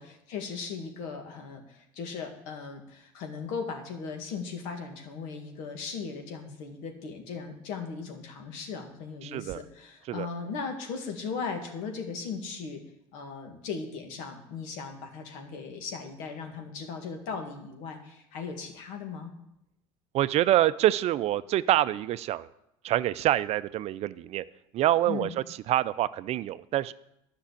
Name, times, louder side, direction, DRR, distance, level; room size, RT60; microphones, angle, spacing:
voice 1, 0.0-12.8 13.1-19.3 25.1-25.3, left 5 dB, 75° left, 4 dB, 2.0 m, -38 dB
voice 2, 9.2-9.6 10.1-10.3 20.1-22.5 22.8-24.4 24.7-25.3 25.7-26.9, right 13 dB, 50° right, 15 dB, 0.5 m, -26 dB
10.5 x 6.1 x 8.4 m, 0.83 s
supercardioid pair, 90°, 13 cm